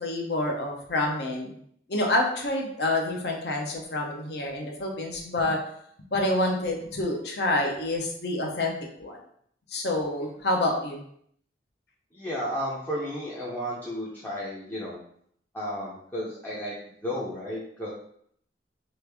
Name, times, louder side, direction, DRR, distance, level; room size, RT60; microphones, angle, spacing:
voice 1, 0.0-1.5 1.9-5.6 6.1-8.7 9.0-9.2 9.7-11.0, left 2 dB, 65° left, 1 dB, 0.7 m, -27 dB
voice 2, 12.1-15.0 15.5-16.7 17.0-17.9, equal, 10° left, -8 dB, 0.5 m, -33 dB
3.1 x 2.5 x 3.4 m, 0.67 s
head